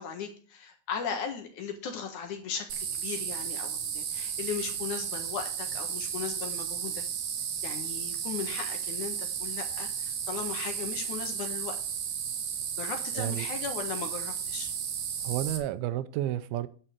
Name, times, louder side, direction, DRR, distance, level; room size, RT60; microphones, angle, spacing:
voice 1, 0.0-7.1 7.6-11.8 12.8-14.7, left 7 dB, 60° left, 2.5 m, -37 dB
sound 1, 2.7-15.6, right 8 dB, 60° right, 2.3 m, -34 dB
voice 2, 15.2-16.7, right 13 dB, 80° right, 2.4 m, -31 dB
9.9 x 5.4 x 7.8 m
omnidirectional pair, 4.3 m